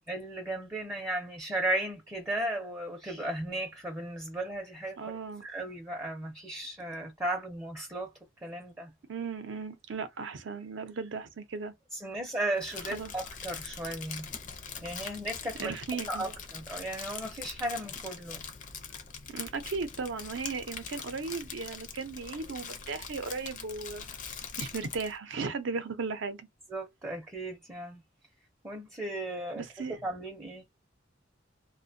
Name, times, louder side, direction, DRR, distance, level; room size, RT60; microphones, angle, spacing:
voice 1, 0.1-8.1 8.4-8.9 11.9-14.3 14.8-18.4 26.7-28.0 28.6-30.6, right 1 dB, 15° right, 0.5 m, -35 dB
voice 2, 5.0-5.5 9.1-11.7 12.9-13.1 15.6-16.2 19.3-24.1 24.6-26.5 29.6-30.0, right 4 dB, 65° right, 0.5 m, -36 dB
Crumpling crinkling, 12.6-25.2, left 6 dB, 40° left, 0.5 m, -43 dB
2.4 x 2.1 x 2.6 m
head